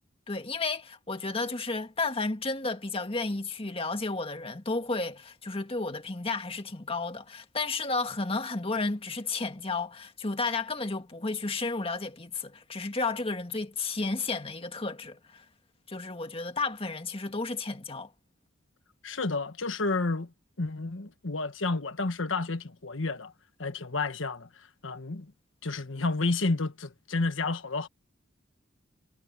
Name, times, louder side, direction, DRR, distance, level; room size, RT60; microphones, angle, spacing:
voice 1, 0.3-15.5 15.9-18.1, left 3 dB, 30° left, 1.9 m, -32 dB
voice 2, 19.0-20.3 20.6-23.3 23.6-24.5 24.8-25.3 25.6-27.9, left 3 dB, 75° left, 1.3 m, -30 dB
head